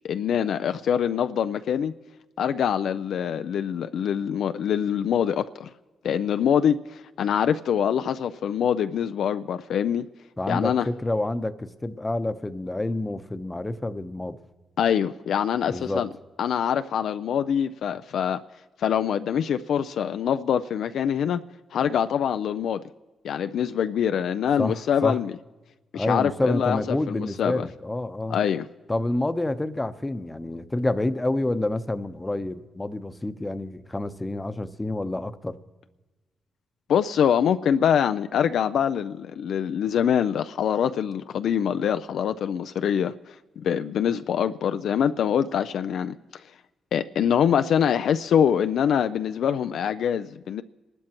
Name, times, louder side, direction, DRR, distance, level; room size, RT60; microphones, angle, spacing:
voice 1, 0.0-1.9 2.4-5.7 6.0-10.1 10.5-10.9 14.8-16.1 16.4-18.4 18.8-21.4 21.7-22.8 23.2-25.3 25.9-27.7 28.3-28.7 36.9-46.2 46.9-50.6, left 8 dB, 75° left, 0.3 m, -24 dB
voice 2, 10.4-14.4 15.7-16.0 24.6-25.2 25.9-28.4 28.9-35.6, left 2 dB, 20° left, 0.8 m, -28 dB
26.5 x 12.0 x 3.0 m
supercardioid pair, 55°, 0 cm